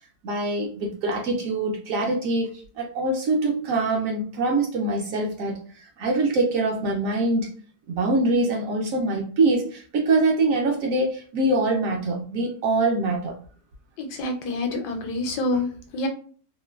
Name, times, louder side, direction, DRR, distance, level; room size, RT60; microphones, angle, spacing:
voice 1, 0.2-2.5 2.8-7.5 7.9-13.4, right 2 dB, 70° right, 0 dB, 0.8 m, -24 dB
voice 2, 14.0-15.7 15.9-16.1, left 2 dB, 85° left, 4 dB, 1.2 m, -27 dB
3.0 x 2.1 x 2.2 m, 0.43 s
omnidirectional pair, 1.7 m